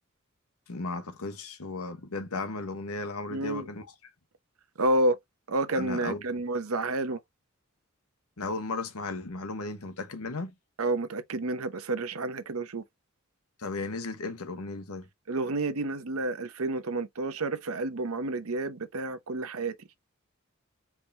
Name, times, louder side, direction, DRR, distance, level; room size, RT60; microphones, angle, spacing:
voice 1, 0.7-3.9 5.7-6.2 8.4-10.5 13.6-15.0, left 3 dB, 85° left, 1.1 m, -35 dB
voice 2, 3.3-3.7 4.8-5.2 5.5-7.2 10.8-12.8 15.3-19.7, right 2 dB, 75° right, 0.8 m, -30 dB
4.7 x 3.6 x 2.8 m
head